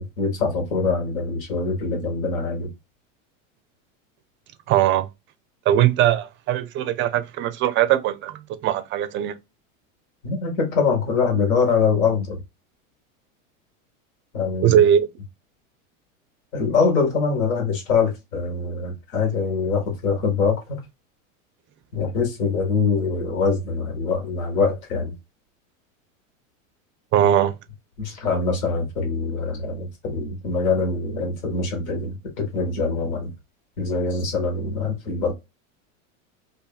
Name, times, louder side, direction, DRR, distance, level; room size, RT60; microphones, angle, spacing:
voice 1, 0.0-2.7 10.2-12.4 14.3-14.8 16.5-20.5 21.9-25.1 28.0-33.3 33.8-35.3, left 4 dB, 85° left, 1.4 m, -23 dB
voice 2, 4.7-5.1 5.7-9.3 14.6-15.1 27.1-27.5, right 10 dB, 30° right, 0.4 m, -20 dB
2.6 x 2.5 x 2.3 m
hypercardioid pair, 110°, 41 cm